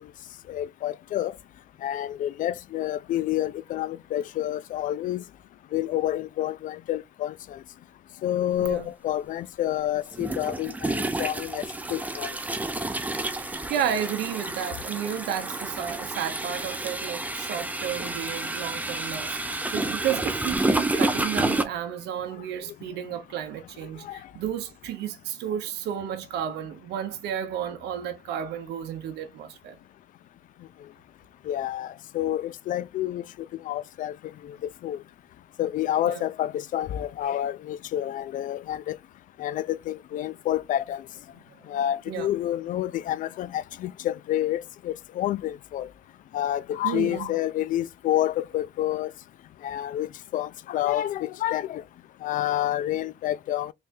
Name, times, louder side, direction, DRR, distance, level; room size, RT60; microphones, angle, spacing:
voice 1, 0.5-1.3 1.8-5.2 5.7-7.6 8.2-11.6 11.9-12.4 24.0-24.2 31.5-33.2 33.7-34.1 34.4-34.6 34.8-35.0 35.6-39.0 39.4-41.0 41.7-45.9 46.3-49.1 49.6-51.8 52.2-53.7, left 12 dB, 50° left, 0.4 m, -28 dB
sound 1, 8.6-8.7 10.1-21.6, right 2 dB, 10° right, 0.5 m, -30 dB
voice 2, 13.4-29.8 36.1-36.2 41.5-41.6 42.1-42.3 46.8-47.4, right 9 dB, 80° right, 0.8 m, -32 dB
3.4 x 3.3 x 2.6 m
cardioid pair, 110°, 17 cm